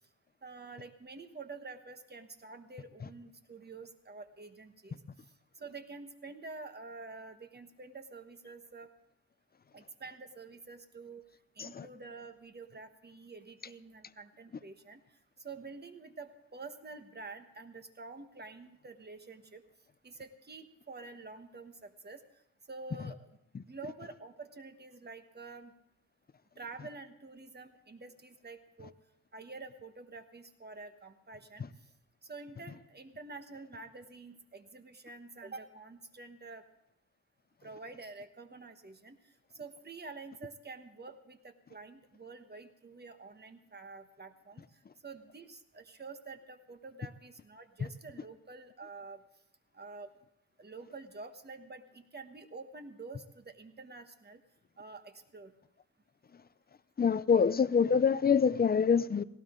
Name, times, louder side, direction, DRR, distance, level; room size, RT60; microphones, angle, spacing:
voice 1, 0.4-5.0 5.6-8.9 9.7-11.2 11.6-15.0 15.4-19.6 20.0-22.2 22.7-23.3 23.7-25.7 26.6-28.9 29.3-31.6 32.2-36.6 37.6-39.2 39.5-44.6 45.0-49.2 49.7-50.1 50.6-54.4 54.8-55.5, right 3 dB, 30° right, 7 dB, 1.2 m, -48 dB
voice 2, 57.0-59.2, left 6 dB, 30° left, 16 dB, 0.5 m, -25 dB
18.0 x 17.0 x 3.7 m, 0.82 s
wide cardioid pair, 145°, 32 cm